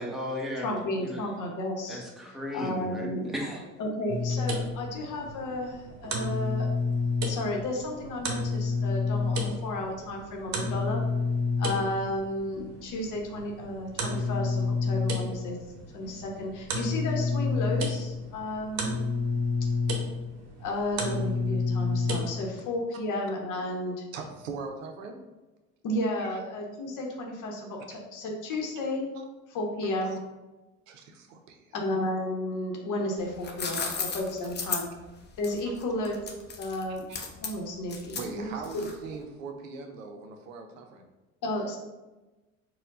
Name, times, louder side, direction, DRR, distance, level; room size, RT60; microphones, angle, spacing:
voice 1, 0.0-1.2 1.9-3.6, left 1 dB, ahead, -2 dB, 1.0 m, -35 dB
voice 2, 0.6-2.0 2.5-3.3 3.8-6.7 7.3-11.0 11.6-15.6 15.9-19.0 20.6-24.0 25.8-29.1 29.5-30.2 31.7-34.9 35.4-36.2 36.6-37.0 37.4-38.9 41.4-41.8, left 1 dB, 50° left, 1 dB, 0.9 m, -33 dB
sound 1, 4.1-22.4, left 3 dB, 45° right, 0.9 m, -30 dB
voice 3, 24.1-25.2 26.3-26.4 29.1-29.3 30.0-30.2 30.9-31.7 33.4-33.5 37.1-37.2 38.1-41.0, right 4 dB, 85° right, 5 dB, 0.6 m, -41 dB
sound 2, 33.2-39.2, left 5 dB, 25° left, 0.6 m, -35 dB
4.3 x 2.2 x 3.6 m, 1.1 s
hypercardioid pair, 60°, 38 cm